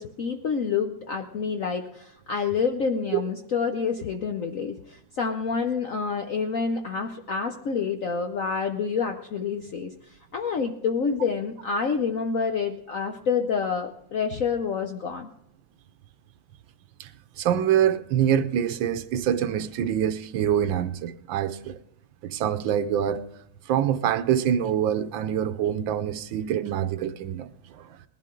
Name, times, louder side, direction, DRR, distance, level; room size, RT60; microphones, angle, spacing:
voice 1, 0.0-9.9 10.3-15.3, left 5 dB, 65° left, 0.8 m, -28 dB
voice 2, 17.4-21.8 22.2-23.2 23.7-28.0, right 9 dB, 75° right, 1.3 m, -25 dB
20.0 x 11.5 x 3.8 m
omnidirectional pair, 2.2 m